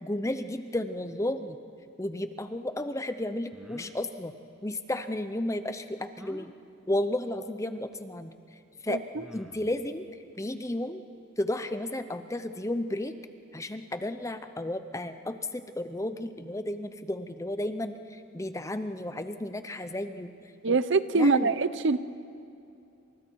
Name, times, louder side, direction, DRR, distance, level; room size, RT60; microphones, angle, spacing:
voice 1, 0.0-1.6 2.0-4.3 4.6-6.5 6.9-8.3 8.8-9.0 9.3-10.1 10.4-11.0 11.4-13.1 13.5-20.3 20.7-20.8 21.1-21.5, left 1 dB, 15° left, 10 dB, 0.7 m, -33 dB
sound 1, 3.5-4.0 6.2-6.5 7.9-8.0 9.2-9.8, equal, ahead, 1.1 m, -47 dB
voice 2, 8.9-9.2 20.6-22.0, right 3 dB, 55° right, 14 dB, 0.7 m, -24 dB
28.5 x 27.0 x 4.7 m, 2.6 s
head